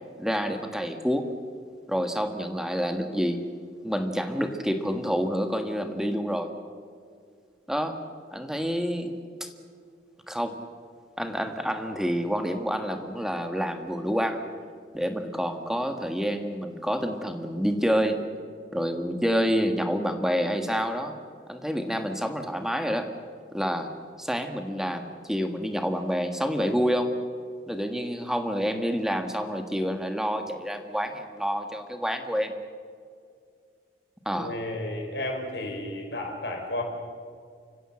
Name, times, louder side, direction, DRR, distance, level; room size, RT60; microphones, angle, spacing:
voice 1, 0.2-1.3 1.9-3.4 3.8-6.5 7.7-8.0 8.3-9.5 10.3-10.6 11.2-14.4 14.9-18.2 18.7-21.1 21.5-23.1 23.5-23.9 24.2-27.2 27.7-32.6 34.2-34.6, equal, 5° right, 6 dB, 1.5 m, -28 dB
voice 2, 34.3-36.8, left 1 dB, 65° left, 1 dB, 5.1 m, -32 dB
29.0 x 16.0 x 7.7 m, 2.2 s
head